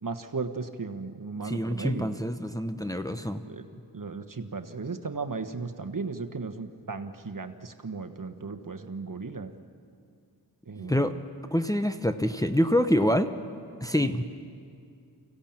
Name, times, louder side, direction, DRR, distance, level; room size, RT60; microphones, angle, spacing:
voice 1, 0.0-2.1 3.5-3.6 3.9-9.5 10.7-11.2 14.0-14.2, right 4 dB, 50° right, 7 dB, 1.3 m, -36 dB
voice 2, 1.4-3.4 10.8-11.1 11.5-13.3 13.8-14.2, equal, 10° left, 7 dB, 0.9 m, -26 dB
24.0 x 16.0 x 8.8 m, 2.4 s
cardioid pair, 40°, 42 cm